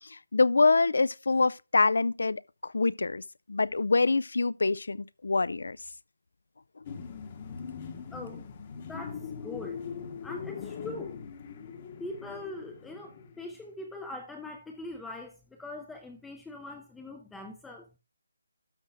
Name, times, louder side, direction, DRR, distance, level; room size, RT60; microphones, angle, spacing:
voice 1, 0.1-3.2 3.5-5.0 5.2-5.8, left 3 dB, 70° left, 0.4 m, -25 dB
sound 1, 6.9-13.5, left 6 dB, 20° left, 0.9 m, -41 dB
voice 2, 8.1-8.5 8.7-9.8 10.2-11.2 12.0-18.0, left 2 dB, 5° left, 0.5 m, -42 dB
12.5 x 6.3 x 3.5 m
hypercardioid pair, 180°, 0 cm